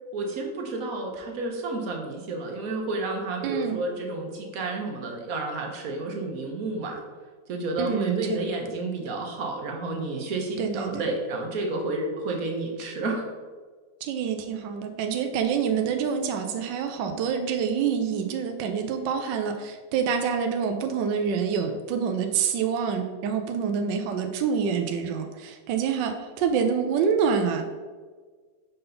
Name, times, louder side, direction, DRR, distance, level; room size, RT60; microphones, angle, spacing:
voice 1, 0.1-7.0 7.5-13.2, right 2 dB, 55° right, 2 dB, 1.3 m, -31 dB
voice 2, 3.4-3.8 7.8-8.5 10.6-11.0 14.0-27.7, right 6 dB, 75° right, 5 dB, 1.1 m, -27 dB
5.6 x 5.3 x 3.9 m, 1.5 s
omnidirectional pair, 2.2 m